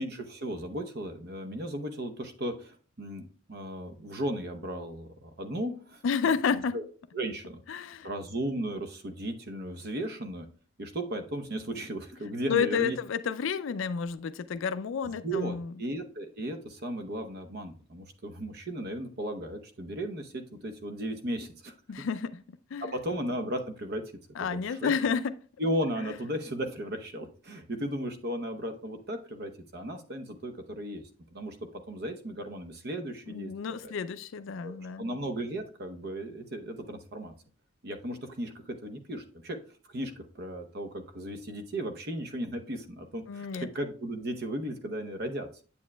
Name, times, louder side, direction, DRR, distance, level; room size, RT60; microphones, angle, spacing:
voice 1, 0.0-6.0 6.5-6.8 7.1-10.5 10.8-13.0 13.2-13.3 15.2-21.7 22.8-24.0 24.4-24.9 25.6-31.0 31.3-33.5 33.8-33.9 34.6-37.3 37.8-39.6 39.9-45.5, right 1 dB, 50° right, 0.8 m, -35 dB
voice 2, 6.0-6.8 7.7-8.1 12.5-15.7 21.9-22.4 22.7-22.9 24.4-25.2 33.3-35.1 43.3-43.7, left 6 dB, 70° left, 0.4 m, -30 dB
8.4 x 7.1 x 2.2 m
head